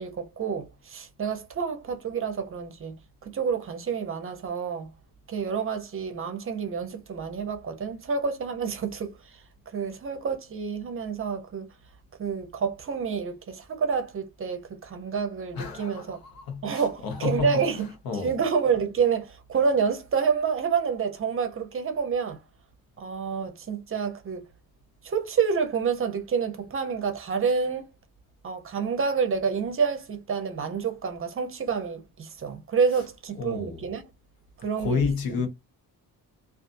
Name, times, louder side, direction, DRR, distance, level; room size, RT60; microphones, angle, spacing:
voice 1, 0.0-2.9 3.3-4.9 5.3-9.1 9.7-11.7 12.2-16.2 16.6-17.8 18.2-22.4 23.0-24.4 25.0-27.9 28.4-34.0 34.6-35.1, right 6 dB, 40° right, 0.6 m, -28 dB
voice 2, 15.5-18.3 33.4-33.8 34.8-35.5, left 5 dB, 80° left, 1.0 m, -30 dB
2.5 x 2.4 x 2.4 m
wide cardioid pair, 160°, 35 cm